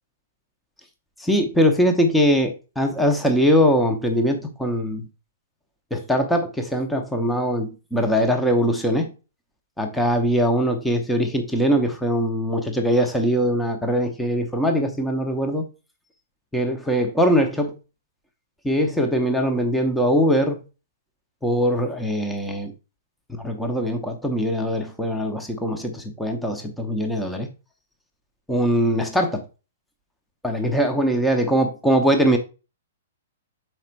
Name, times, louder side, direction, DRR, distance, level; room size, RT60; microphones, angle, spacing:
voice 1, 1.2-5.1 5.9-9.1 9.8-15.6 16.5-17.7 18.6-20.6 21.4-22.7 23.4-27.5 28.5-29.4 30.4-32.4, equal, 5° left, 0.8 m, -21 dB
5.8 x 4.5 x 4.4 m
figure-of-eight pair, 110°, 0 cm